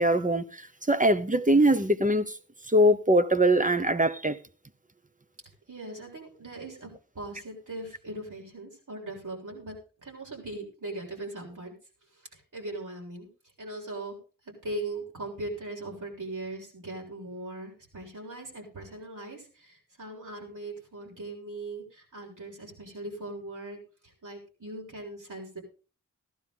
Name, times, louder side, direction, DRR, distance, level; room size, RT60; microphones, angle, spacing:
voice 1, 0.0-2.4 2.7-4.4, right 1 dB, 25° right, 1.0 m, -22 dB
voice 2, 5.7-9.8 10.0-11.7 12.3-13.3 13.6-14.2 14.5-25.6, right 2 dB, 70° right, 7.0 m, -40 dB
15.5 x 11.5 x 3.9 m
wide cardioid pair, 45°, 32 cm